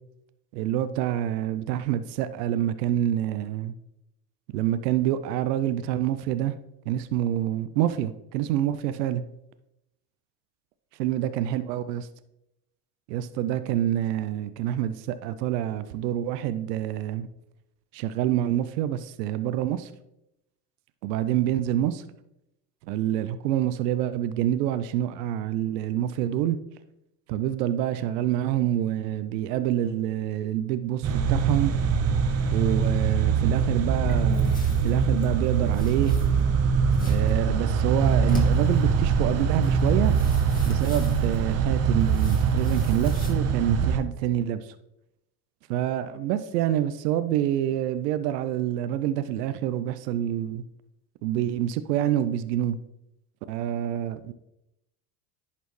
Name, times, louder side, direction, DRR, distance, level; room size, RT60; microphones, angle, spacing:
voice 1, 0.5-3.7 4.5-6.5 6.9-9.2 11.0-12.1 13.1-17.3 17.9-19.9 21.0-22.0 22.9-26.6 27.3-31.7 32.5-36.2 37.0-40.1 40.6-44.7 45.7-50.6 51.2-52.8 53.5-54.3, right 11 dB, 85° right, 13 dB, 0.5 m, -27 dB
sound 1, 31.0-44.0, right 6 dB, 35° right, 0.6 m, -23 dB
sound 2, 33.8-43.3, left 2 dB, 20° left, 2.1 m, -40 dB
11.0 x 4.2 x 3.1 m, 0.86 s
hypercardioid pair, 80°, 47 cm